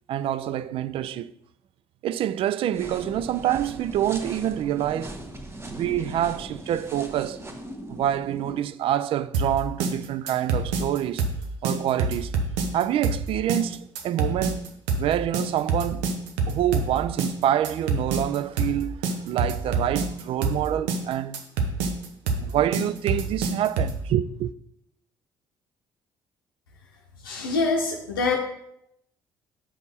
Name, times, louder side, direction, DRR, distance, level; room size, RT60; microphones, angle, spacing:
voice 1, 0.1-1.3 2.0-5.2 5.7-7.4 7.9-11.2 11.6-12.3 12.7-14.6 15.0-16.0 16.5-19.0 19.2-21.4 22.4-24.5, right 11 dB, 55° right, 0.4 m, -26 dB
sound 1, 2.7-8.6, right 1 dB, 20° right, 1.2 m, -39 dB
sound 2, 9.3-24.0, right 4 dB, 75° right, 0.8 m, -26 dB
voice 2, 27.2-28.4, left 3 dB, 85° left, 0.7 m, -25 dB
7.2 x 5.2 x 4.1 m
hypercardioid pair, 50°, 11 cm